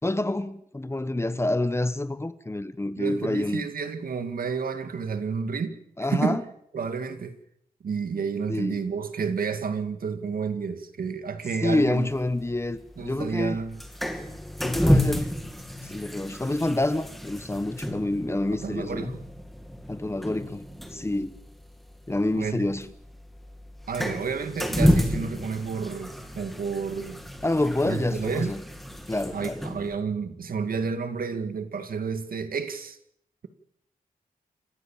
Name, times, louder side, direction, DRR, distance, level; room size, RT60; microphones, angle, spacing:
voice 1, 0.0-3.7 6.0-6.4 8.5-8.8 11.6-13.6 14.6-15.3 15.8-19.1 19.9-20.6 20.9-21.4 22.1-22.9 27.4-28.6 29.1-29.7, left 2 dB, 15° left, 1.2 m, -27 dB
voice 2, 2.9-5.8 6.1-6.4 6.7-7.4 7.8-12.1 13.0-13.8 18.6-19.2 22.4-22.7 23.9-27.2 27.9-28.5 29.3-33.0, right 5 dB, 80° right, 2.2 m, -30 dB
sound 1, 11.7-29.9, equal, ahead, 2.5 m, -30 dB
28.0 x 15.0 x 7.4 m
wide cardioid pair, 90°, 15 cm